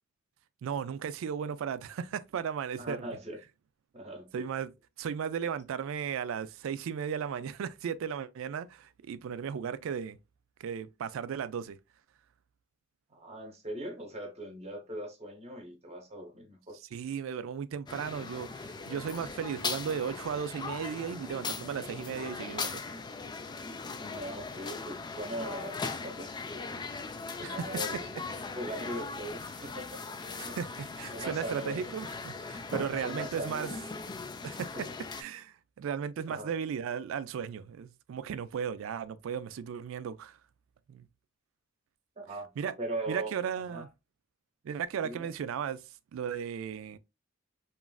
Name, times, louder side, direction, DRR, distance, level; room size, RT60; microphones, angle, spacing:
voice 1, 0.6-3.1 4.3-4.7 5.0-10.2 10.6-11.8 16.9-22.8 27.4-27.8 30.4-33.7 34.4-34.9 35.2-40.4 40.9-41.1 42.6-42.7 43.1-43.9 44.6-47.0, right 7 dB, 70° right, 0.3 m, -36 dB
voice 2, 2.8-3.4 3.9-4.5 13.1-16.8 24.0-26.9 27.4-30.0 30.4-30.6 31.1-31.9 32.7-33.8 34.7-34.8 36.3-36.6 42.2-42.5 42.8-43.3 43.7-43.8 45.0-45.3, right 1 dB, 30° right, 0.8 m, -40 dB
sound 1, 17.9-35.2, left 4 dB, 20° left, 0.3 m, -39 dB
3.0 x 2.4 x 2.3 m
head